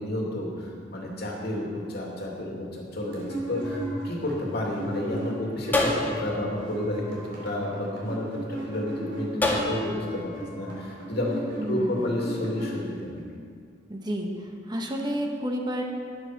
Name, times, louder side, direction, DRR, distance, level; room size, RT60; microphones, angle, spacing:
voice 1, 0.0-3.8 4.0-11.3 11.7-13.2, left 1 dB, 60° left, -2 dB, 2.6 m, -31 dB
sound 1, 3.1-6.3 6.5-13.2, right 2 dB, 80° right, 3.7 m, -37 dB
sound 2, 3.6-5.1 5.7-8.3 9.4-10.8, left 2 dB, 10° left, 1.7 m, -31 dB
voice 2, 11.6-12.1 13.9-15.8, equal, 25° right, 1 dB, 1.2 m, -30 dB
11.5 x 9.9 x 5.9 m, 2.1 s
head